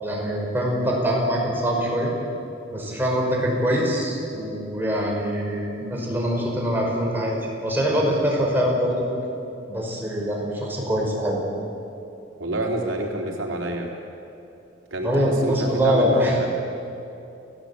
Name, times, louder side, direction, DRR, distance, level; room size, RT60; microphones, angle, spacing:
voice 1, 0.0-2.1 2.7-7.4 7.6-9.1 9.7-11.4 15.0-16.4, equal, 10° right, -2 dB, 5.3 m, -23 dB
voice 2, 12.4-13.9 14.9-16.5, right 1 dB, 85° right, 0 dB, 3.8 m, -28 dB
29.0 x 17.5 x 8.6 m, 2.8 s
head